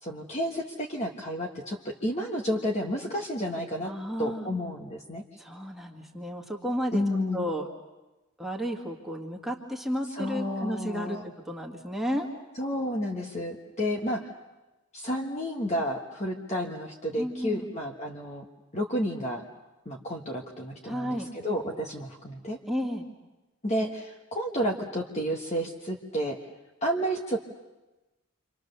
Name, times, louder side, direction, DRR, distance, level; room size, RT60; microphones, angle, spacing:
voice 1, 0.0-3.9 4.2-5.2 6.9-7.5 10.1-11.2 12.6-14.3 14.9-18.4 18.7-19.4 19.8-22.6 23.6-26.4 26.8-27.4, equal, 35° left, 1 dB, 1.5 m, -31 dB
voice 2, 3.8-4.5 5.4-7.0 7.3-7.7 8.4-11.2 11.5-12.3 17.2-17.7 20.8-21.3 22.7-23.1, equal, ahead, -1 dB, 1.9 m, -32 dB
28.5 x 26.0 x 6.8 m, 1.1 s
head